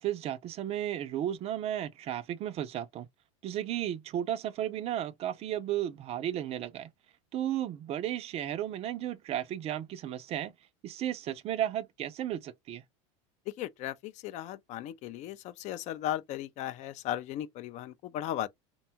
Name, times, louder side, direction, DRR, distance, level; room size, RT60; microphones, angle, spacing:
voice 1, 0.0-3.1 3.4-6.9 7.3-10.5 10.8-12.8, right 11 dB, 40° right, 0.4 m, -34 dB
voice 2, 13.5-18.5, left 12 dB, 45° left, 0.4 m, -36 dB
2.6 x 2.2 x 2.8 m
supercardioid pair, 105°, 16 cm